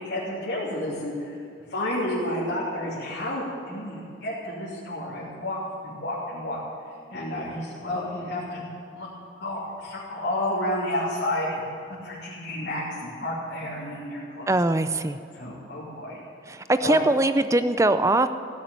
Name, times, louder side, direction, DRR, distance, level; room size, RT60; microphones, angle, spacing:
voice 1, 0.0-1.3 1.7-5.6 5.8-6.6 7.1-8.6 8.9-9.1 9.4-11.6 11.9-14.5 15.3-16.2 16.8-17.0, left 1 dB, 90° left, -8 dB, 3.0 m, -30 dB
voice 2, 14.5-15.2 16.5-18.3, right 2 dB, 15° right, 11 dB, 0.5 m, -21 dB
16.5 x 7.4 x 9.3 m, 2.5 s
head